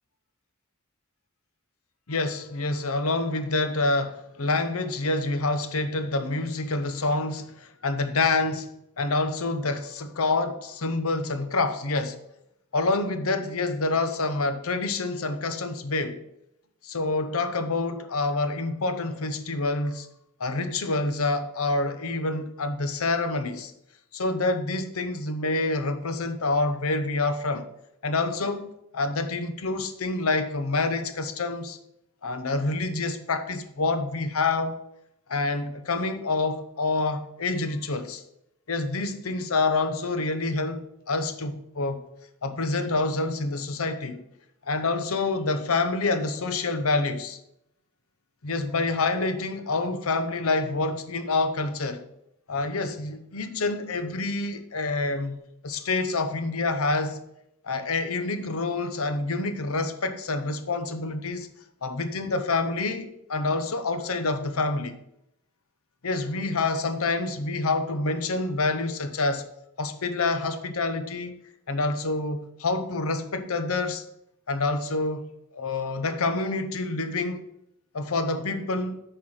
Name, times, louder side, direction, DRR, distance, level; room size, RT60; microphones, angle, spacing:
voice 1, 2.1-8.7 9.0-12.2 12.7-16.2 16.8-20.1 20.4-23.7 24.1-27.7 28.0-31.8 32.2-34.8 35.3-38.2 38.7-42.0 42.4-44.2 44.7-47.4 48.4-52.0 52.5-55.4 55.6-57.2 57.6-61.5 61.8-65.0 66.0-69.4 69.8-71.3 71.7-74.0 74.5-75.3 75.5-77.5 77.9-79.0, left 3 dB, 75° left, 0.9 m, -27 dB
8.6 x 4.6 x 6.0 m
head